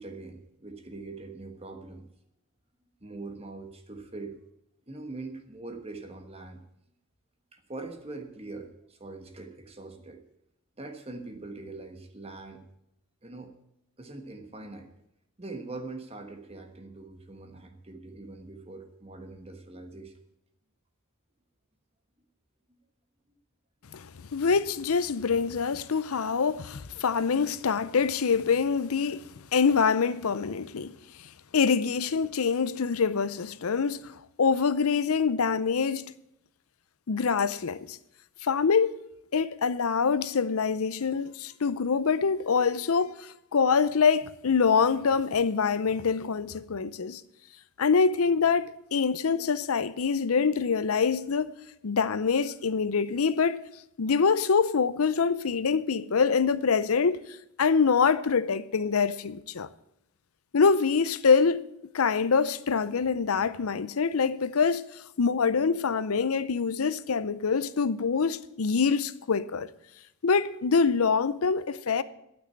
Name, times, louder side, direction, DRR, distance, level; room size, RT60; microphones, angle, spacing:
voice 1, 0.0-2.1 3.0-4.4 4.9-6.6 7.5-10.2 10.8-12.6 13.2-13.5 14.0-14.9 15.4-20.2, right 3 dB, 30° right, 1.3 m, -42 dB
voice 2, 23.9-31.0 31.5-36.2 37.1-38.0 38.4-39.0 39.3-47.2 47.8-51.5 51.8-53.6 54.0-57.2 57.6-59.7 60.5-61.6 61.9-64.8 65.2-69.7 70.2-72.0, left 5 dB, 75° left, 0.6 m, -25 dB
12.0 x 6.1 x 8.8 m
head